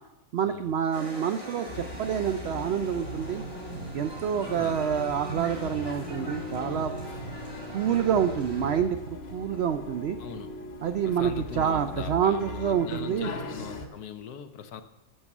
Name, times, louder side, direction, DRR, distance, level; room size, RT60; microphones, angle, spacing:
voice 1, 0.3-3.4 3.9-7.0 7.7-10.2 10.8-13.3, right 8 dB, 80° right, 9 dB, 0.5 m, -27 dB
sound 1, 0.9-8.8, right 2 dB, 20° right, 3.0 m, -42 dB
sound 2, 1.7-13.9, left 1 dB, 45° left, 1.3 m, -39 dB
voice 2, 4.4-4.8 10.2-10.5 11.0-14.8, left 7 dB, 80° left, 9 dB, 1.2 m, -40 dB
11.0 x 7.6 x 6.0 m, 0.96 s
omnidirectional pair, 1.7 m